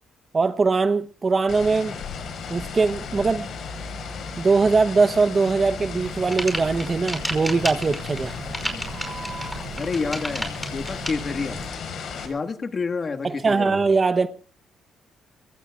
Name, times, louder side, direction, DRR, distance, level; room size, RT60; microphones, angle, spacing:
voice 1, 0.3-2.0 2.5-3.5 4.4-8.3 13.2-14.3, right 4 dB, 35° right, 1.0 m, -21 dB
sound 1, 1.5-12.3, left 5 dB, 65° left, 5.2 m, -35 dB
sound 2, 5.6-11.7, right 5 dB, 55° right, 4.4 m, -40 dB
sound 3, 6.0-11.1, equal, ahead, 5.4 m, -31 dB
voice 2, 9.8-11.6 12.2-13.8, left 4 dB, 40° left, 1.8 m, -29 dB
25.0 x 22.0 x 2.5 m
cardioid pair, 90°, 0 cm